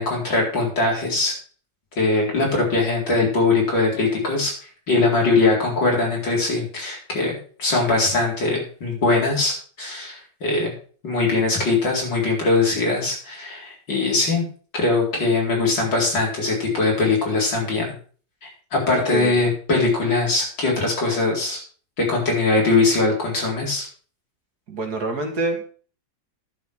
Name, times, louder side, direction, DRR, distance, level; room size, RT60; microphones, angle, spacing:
voice 1, 0.0-1.3 2.0-4.5 4.9-10.7 11.0-14.5 14.7-17.9 18.4-21.6 22.0-23.9, left 3 dB, 75° left, -2 dB, 5.0 m, -21 dB
voice 2, 19.1-19.4 24.7-25.7, right 2 dB, 55° right, 4 dB, 2.6 m, -26 dB
11.0 x 6.6 x 6.4 m, 0.41 s
omnidirectional pair, 2.0 m